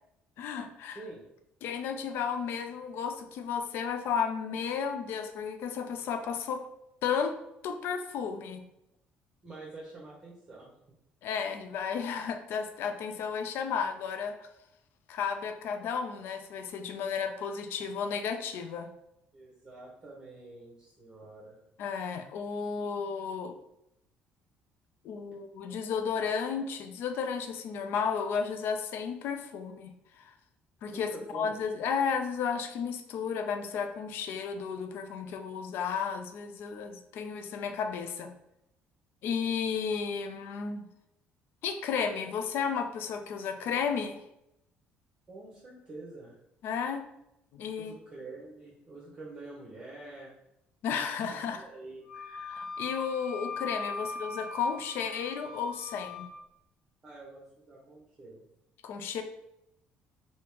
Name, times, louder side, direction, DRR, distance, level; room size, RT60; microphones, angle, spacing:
voice 1, 0.4-1.0 1.6-6.6 7.0-7.3 7.6-8.6 11.2-14.5 15.1-18.9 21.8-23.6 25.0-29.9 30.2-30.3 30.8-38.3 39.2-40.9 41.6-44.2 46.6-47.1 47.5-47.9 50.8-51.6 52.4-56.2 58.8-59.2, left 6 dB, 65° left, 7 dB, 0.4 m, -33 dB
voice 2, 9.4-10.7 19.3-21.6 30.9-31.6 45.3-46.4 47.6-50.3 51.3-52.1 54.0-54.1 57.0-58.4, right 2 dB, 20° right, -5 dB, 0.8 m, -47 dB
Wind instrument woodwind instrument, 52.0-56.3, left 3 dB, 5° left, 1.4 m, -40 dB
3.0 x 2.7 x 3.4 m, 0.83 s
cardioid pair, 130°, 4 cm